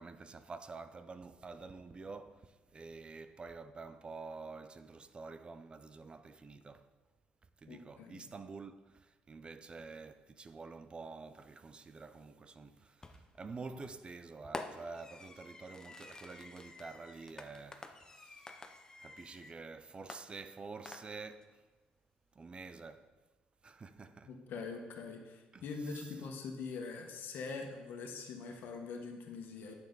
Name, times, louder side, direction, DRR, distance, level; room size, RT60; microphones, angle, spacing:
voice 1, 0.0-6.9 7.6-18.6 19.0-21.6 22.3-23.1 23.6-24.3 25.5-26.3, right 4 dB, 30° right, 0.5 m, -49 dB
voice 2, 7.7-8.3 24.2-29.7, left 4 dB, 70° left, 1.5 m, -43 dB
Fireworks, 13.0-13.4 14.5-19.6 20.1-21.4, left 2 dB, 20° left, 0.8 m, -49 dB
11.0 x 7.0 x 4.0 m
cardioid pair, 95°, 3 cm